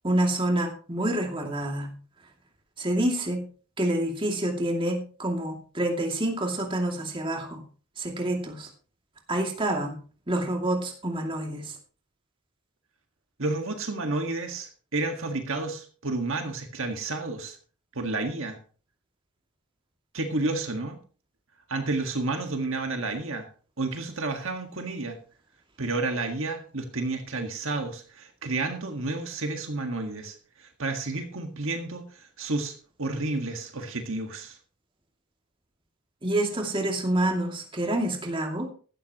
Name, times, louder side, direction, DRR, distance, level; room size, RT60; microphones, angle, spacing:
voice 1, 0.0-1.9 2.8-3.4 3.8-7.6 8.0-8.7 9.3-10.0 10.3-11.8 36.2-38.7, right 1 dB, 25° right, 1 dB, 2.4 m, -27 dB
voice 2, 13.4-17.6 17.9-18.6 20.1-21.0 21.7-23.5 23.8-25.2 25.8-34.6, right 2 dB, 60° right, 4 dB, 1.7 m, -31 dB
15.5 x 12.5 x 3.0 m, 0.39 s
head